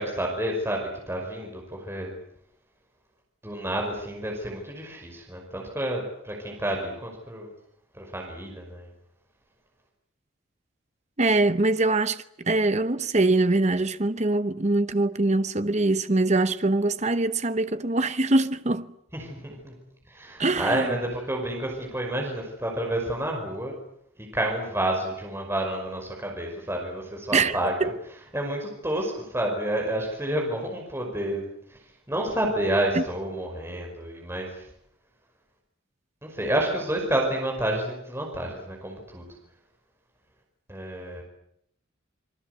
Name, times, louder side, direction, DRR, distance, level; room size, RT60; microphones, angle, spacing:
voice 1, 0.0-2.1 3.4-7.5 7.9-8.9 19.1-19.7 20.1-23.7 24.2-27.9 28.3-31.4 31.7-31.8 32.1-34.6 36.2-39.3 40.7-41.2, right 1 dB, 10° right, 5.6 m, -29 dB
voice 2, 11.2-18.9 20.4-20.9 27.3-27.9 32.9-33.0, right 2 dB, 35° right, 1.0 m, -23 dB
27.5 x 22.0 x 8.1 m
head